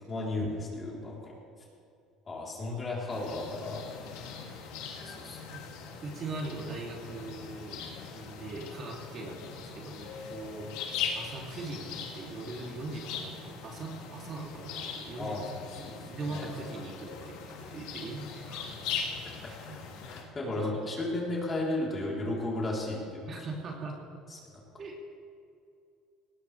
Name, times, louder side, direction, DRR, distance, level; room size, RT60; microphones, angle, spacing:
voice 1, 0.1-1.3 2.3-3.8 4.2-4.3 5.0-5.4 15.2-16.0 16.3-16.5 19.4-19.8 20.1-23.3 24.3-24.4, left 2 dB, 25° left, -3 dB, 3.8 m, -34 dB
sound 1, 3.1-20.2, left 6 dB, 85° left, 2.6 m, -40 dB
voice 2, 6.0-7.8 8.1-10.7 11.1-15.4 15.8-18.6 19.4-19.8 20.6-20.9 23.3-24.0 24.8-25.0, right 3 dB, 40° right, -1 dB, 2.9 m, -41 dB
19.0 x 18.5 x 3.4 m, 2.5 s
cardioid pair, 130°, 0 cm